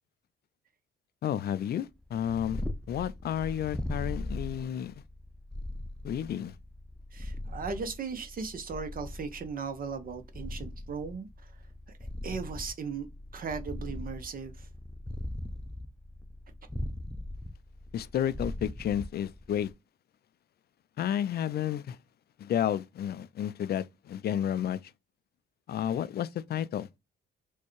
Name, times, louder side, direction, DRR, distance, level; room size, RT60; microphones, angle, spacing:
voice 1, 1.2-2.6 2.9-5.0 6.0-6.5 17.9-19.7 21.0-22.0 22.4-24.8 25.7-26.9, left 10 dB, 55° left, 0.4 m, -31 dB
Purr, 2.0-19.7, left 1 dB, 5° left, 0.6 m, -40 dB
voice 2, 7.1-11.3 12.2-13.1 13.3-14.7, right 5 dB, 45° right, 0.7 m, -37 dB
4.4 x 2.2 x 3.0 m
cardioid pair, 90°, 20 cm